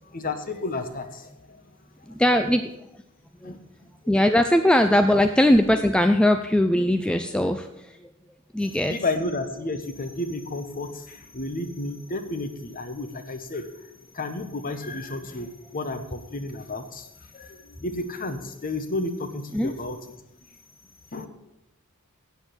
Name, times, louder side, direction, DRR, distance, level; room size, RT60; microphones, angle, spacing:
voice 1, 0.1-1.6 3.4-3.6 8.6-17.1 17.3-20.0 21.1-21.3, left 2 dB, 40° left, 9 dB, 1.0 m, -32 dB
voice 2, 2.1-2.7 3.4-3.5 4.1-7.7 8.5-9.0 19.5-19.7, left 1 dB, 5° left, 7 dB, 0.4 m, -20 dB
8.3 x 8.1 x 6.9 m, 0.87 s
head